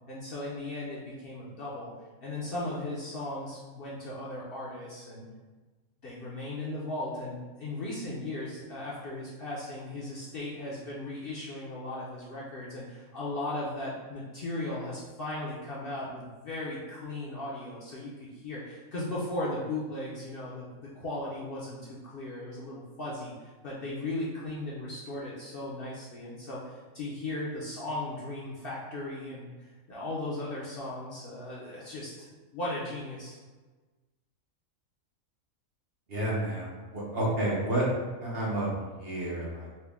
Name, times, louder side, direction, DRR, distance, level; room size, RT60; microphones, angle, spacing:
voice 1, 0.1-1.9 2.2-5.3 6.0-29.5 29.9-33.4, left 1 dB, 55° left, -6 dB, 0.7 m, -37 dB
voice 2, 36.1-37.9 38.2-39.7, right 1 dB, 50° right, -5 dB, 0.9 m, -30 dB
4.2 x 2.2 x 3.4 m, 1.3 s
omnidirectional pair, 1.4 m